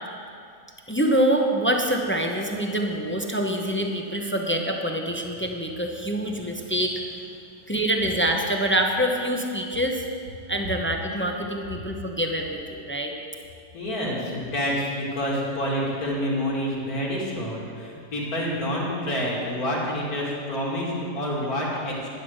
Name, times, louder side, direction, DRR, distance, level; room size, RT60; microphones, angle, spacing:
voice 1, 0.9-6.9 7.7-10.0 10.5-13.1, right 1 dB, 15° left, 2 dB, 0.5 m, -25 dB
voice 2, 13.7-22.1, equal, 55° left, -4 dB, 3.1 m, -28 dB
11.5 x 10.5 x 6.5 m, 2.4 s
omnidirectional pair, 1.9 m